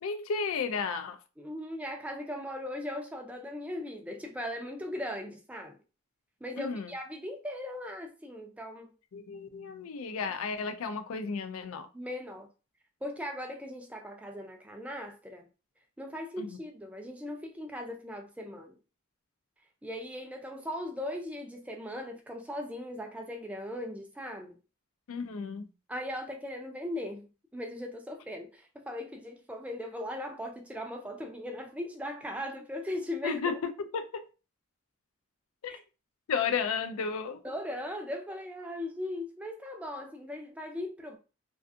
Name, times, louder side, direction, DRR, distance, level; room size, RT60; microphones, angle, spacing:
voice 1, 0.0-1.2 6.6-6.9 9.1-11.9 16.4-16.6 25.1-25.7 33.2-34.3 35.6-35.7 36.3-37.4, left 5 dB, 75° left, 0.4 m, -33 dB
voice 2, 1.4-5.8 6.4-8.9 11.9-12.5 13.0-15.5 16.0-18.7 19.8-24.6 25.9-33.6 35.7-35.8 37.4-41.2, left 1 dB, 5° right, 0.4 m, -38 dB
2.5 x 2.3 x 2.5 m
head